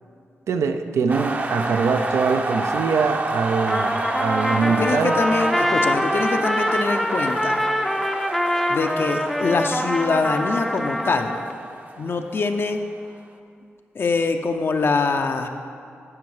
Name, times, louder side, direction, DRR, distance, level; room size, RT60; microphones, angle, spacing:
voice 1, 0.5-3.9 4.2-5.2, right 5 dB, 80° right, 8 dB, 0.4 m, -23 dB
sound 1, 1.1-12.8, right 2 dB, 35° right, 0.7 m, -30 dB
Trumpet, 3.7-11.5, equal, 5° left, 0.5 m, -24 dB
voice 2, 4.7-7.6 8.7-11.4 12.0-12.8 13.9-15.5, left 4 dB, 55° left, 5 dB, 0.5 m, -23 dB
11.0 x 4.5 x 4.8 m, 2.4 s
cardioid pair, 60°, 5 cm